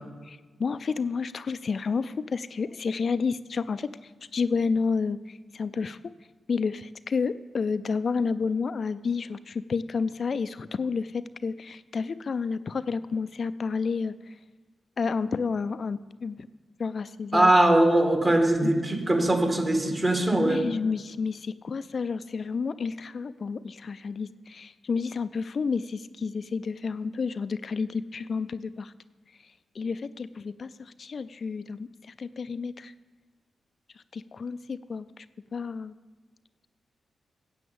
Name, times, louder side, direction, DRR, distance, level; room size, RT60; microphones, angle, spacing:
voice 1, 0.3-6.0 6.5-14.3 15.0-16.4 16.8-17.5 18.6-18.7 20.3-28.9 29.8-31.9 32.2-32.9 34.1-35.3 35.5-35.9, left 5 dB, 60° left, 13 dB, 0.3 m, -30 dB
voice 2, 17.3-20.6, right 1 dB, 30° right, 4 dB, 2.0 m, -21 dB
9.2 x 7.8 x 7.0 m, 1.3 s
supercardioid pair, 40°, 0 cm